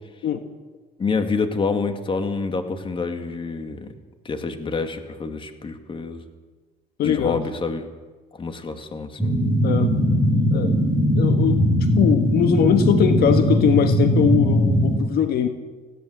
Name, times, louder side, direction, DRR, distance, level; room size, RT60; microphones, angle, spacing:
voice 1, 1.0-3.9 4.2-6.2 7.0-7.8 8.3-9.3, left 4 dB, 30° left, 7 dB, 2.3 m, -27 dB
voice 2, 7.0-7.5 9.6-9.9 10.5-10.7 11.2-11.6 12.0-15.5, left 8 dB, 65° left, 7 dB, 1.5 m, -21 dB
sound 1, 9.2-15.0, equal, 5° left, 5.2 m, -19 dB
20.5 x 16.5 x 8.0 m, 1.3 s
cardioid pair, 110°, 17 cm